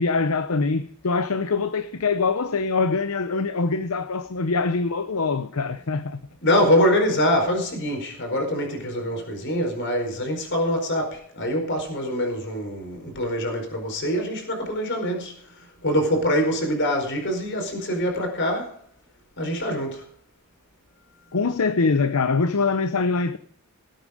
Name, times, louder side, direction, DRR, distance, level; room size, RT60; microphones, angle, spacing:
voice 1, 0.0-6.2 21.3-23.4, left 4 dB, 70° left, 0.7 m, -23 dB
voice 2, 6.4-15.3 15.8-18.7 19.4-20.0, equal, 55° left, 4.6 m, -24 dB
18.5 x 9.0 x 5.0 m
head